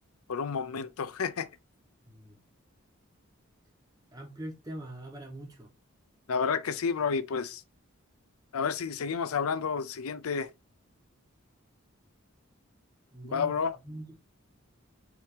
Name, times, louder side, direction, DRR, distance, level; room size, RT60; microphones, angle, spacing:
voice 1, 0.3-1.5 6.3-7.6 8.5-10.5 13.3-13.8, left 6 dB, 90° left, 0.5 m, -30 dB
voice 2, 2.1-2.4 4.1-5.7 13.1-13.5 13.8-14.2, right 1 dB, 20° right, 1.2 m, -42 dB
4.7 x 2.9 x 3.5 m
head